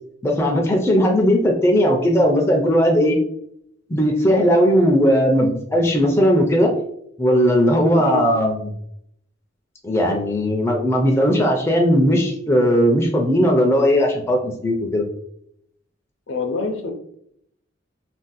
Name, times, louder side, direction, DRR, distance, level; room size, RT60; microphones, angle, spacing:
voice 1, 0.2-3.2 3.9-6.7 7.2-8.8 9.8-15.1, equal, 15° left, 1 dB, 0.4 m, -17 dB
voice 2, 16.3-16.9, left 4 dB, 70° left, 4 dB, 0.5 m, -26 dB
2.5 x 2.1 x 3.9 m, 0.71 s
head